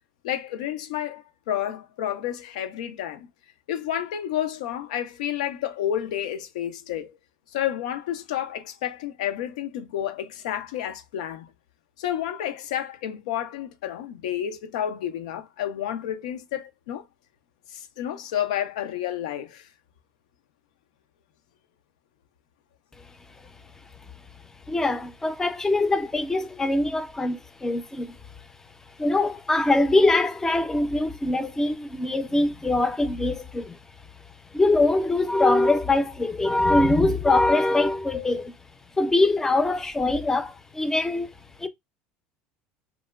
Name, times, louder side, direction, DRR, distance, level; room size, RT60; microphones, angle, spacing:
voice 1, 0.2-3.3 3.7-7.1 7.5-11.5 12.0-17.0 17.7-19.7, left 10 dB, 90° left, 0.3 m, -30 dB
voice 2, 24.7-28.2 29.0-33.8 34.5-38.5 39.0-41.3 41.6-41.7, left 2 dB, 15° left, 0.4 m, -23 dB
2.9 x 2.1 x 2.2 m
supercardioid pair, 105°, 4 cm